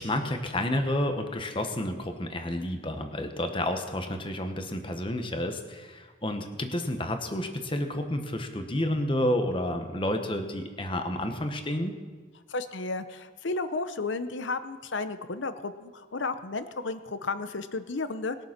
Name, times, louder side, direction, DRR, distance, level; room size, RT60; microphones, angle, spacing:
voice 1, 0.0-11.9, left 1 dB, 25° left, 6 dB, 1.1 m, -30 dB
voice 2, 12.5-18.4, left 3 dB, 65° left, 11 dB, 0.8 m, -33 dB
20.0 x 7.0 x 5.9 m, 1.5 s
head